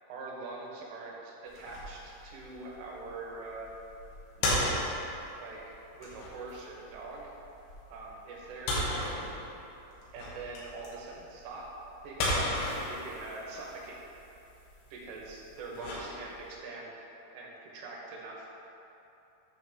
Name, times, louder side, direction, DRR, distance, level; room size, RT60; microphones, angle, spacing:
voice 1, 0.1-3.7 4.4-4.9 5.4-7.3 7.9-9.3 10.1-11.7 12.0-12.6 12.9-14.0 14.9-16.9 17.3-18.5, right 3 dB, 80° right, -3 dB, 3.6 m, -43 dB
sound 1, 1.5-16.6, left 1 dB, 80° left, 3.9 m, -36 dB
10.0 x 3.6 x 6.2 m, 2.9 s
omnidirectional pair, 5.7 m